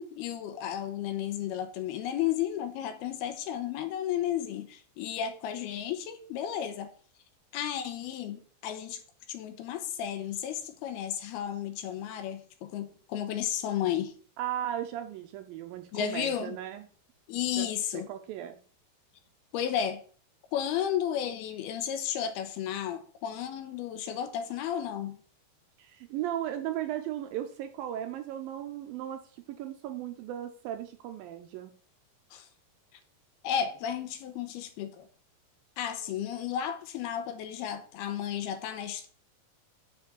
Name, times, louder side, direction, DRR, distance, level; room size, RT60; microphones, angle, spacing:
voice 1, 0.0-6.9 7.5-9.0 9.3-14.1 15.9-16.6 17.3-18.1 19.5-20.0 20.5-25.2 32.3-32.5 33.4-35.1 35.8-39.1, left 10 dB, 80° left, 2.8 m, -33 dB
voice 2, 14.4-16.8 17.6-17.7 18.1-18.6 25.8-31.7, right 11 dB, 80° right, 2.1 m, -36 dB
6.6 x 4.9 x 6.9 m
omnidirectional pair, 4.6 m